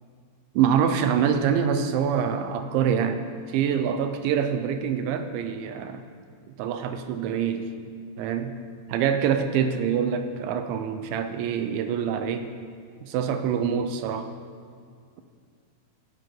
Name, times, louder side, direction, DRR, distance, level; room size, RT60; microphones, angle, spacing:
voice 1, 0.6-3.2 3.5-6.0 6.6-7.7 8.2-8.6 8.9-12.5 13.0-14.3, right 7 dB, 80° right, 8 dB, 3.0 m, -25 dB
16.5 x 16.0 x 3.9 m, 2.1 s
omnidirectional pair, 5.4 m